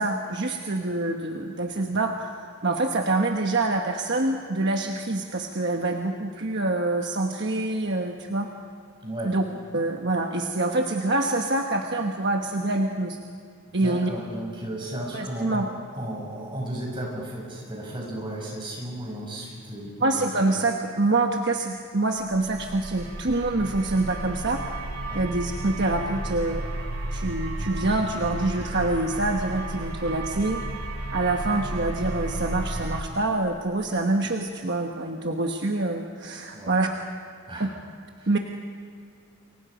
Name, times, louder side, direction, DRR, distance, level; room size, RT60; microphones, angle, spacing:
voice 1, 0.0-8.5 9.2-9.4 9.7-13.2 13.7-14.1 15.1-15.7 20.0-24.6 25.1-26.7 27.1-30.6 31.1-36.9 37.6-37.7 38.3-38.4, right 2 dB, 50° right, 2 dB, 1.2 m, -26 dB
voice 2, 9.0-9.3 13.7-15.6 15.9-20.5 25.1-25.2 36.5-36.8 37.5-37.7 38.2-38.3, right 1 dB, 20° right, -2 dB, 6.8 m, -34 dB
sound 1, 22.3-33.0, right 1 dB, 75° right, 2.6 m, -33 dB
29.0 x 23.5 x 5.2 m, 2.3 s
head